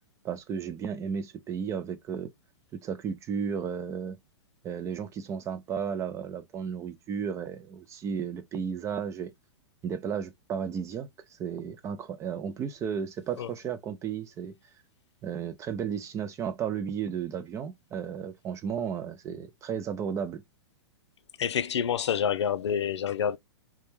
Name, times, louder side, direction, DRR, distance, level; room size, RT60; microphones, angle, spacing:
voice 1, 0.2-2.3 2.7-4.2 4.6-9.3 9.8-11.1 11.4-14.5 15.2-20.4, right 7 dB, 20° right, 0.4 m, -34 dB
voice 2, 21.4-23.4, left 8 dB, 75° left, 0.4 m, -27 dB
2.3 x 2.1 x 3.1 m
hypercardioid pair, 120°, 14 cm